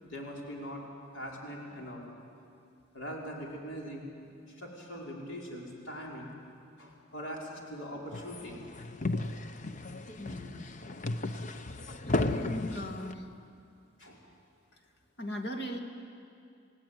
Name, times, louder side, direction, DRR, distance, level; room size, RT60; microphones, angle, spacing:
voice 1, 0.0-0.8 1.1-2.0 2.9-6.3 6.8-8.6 14.0-14.2, equal, 75° left, -2 dB, 5.0 m, -42 dB
sound 1, 8.1-13.1, left 2 dB, 40° left, 0.9 m, -34 dB
voice 2, 10.2-10.7 12.1-13.3 14.7-14.8 15.2-15.8, equal, 55° left, 4 dB, 2.6 m, -39 dB
29.0 x 17.5 x 9.6 m, 2.4 s
head